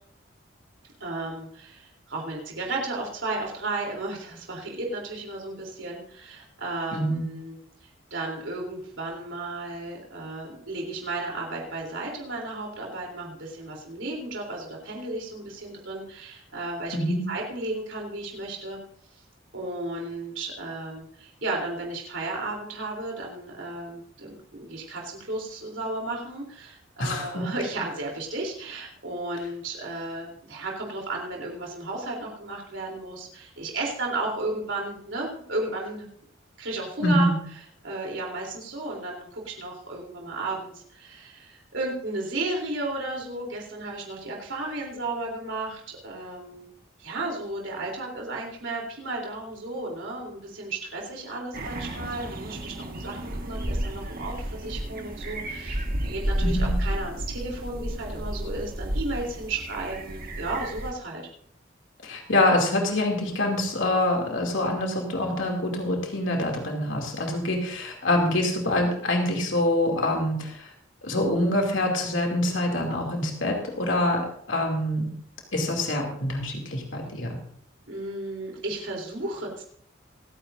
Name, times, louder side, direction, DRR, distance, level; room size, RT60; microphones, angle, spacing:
voice 1, 1.0-18.8 19.5-36.1 36.6-37.3 37.8-46.7 47.0-61.2 77.9-79.6, right 2 dB, 75° right, -1 dB, 3.4 m, -34 dB
voice 2, 6.9-7.2 16.9-17.3 27.0-27.5 37.0-37.3 56.4-56.7 62.0-70.7 71.0-75.0 75.5-77.4, left 1 dB, 80° left, 1 dB, 2.7 m, -25 dB
sound 1, 51.5-60.9, right 1 dB, 50° right, 1.7 m, -31 dB
27.0 x 9.8 x 2.6 m, 0.63 s
head